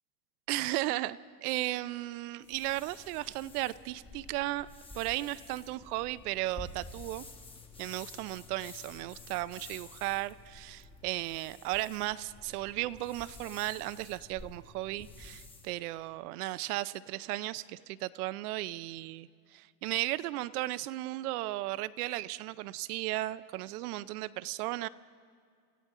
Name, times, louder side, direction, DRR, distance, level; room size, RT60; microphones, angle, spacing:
voice 1, 0.5-4.7 4.9-7.2 7.8-24.9, right 17 dB, 70° right, 16 dB, 0.6 m, -35 dB
sound 1, 2.4-15.7, left 3 dB, 10° left, 1.1 m, -51 dB
27.0 x 14.5 x 3.7 m, 2.2 s
supercardioid pair, 130°, 48 cm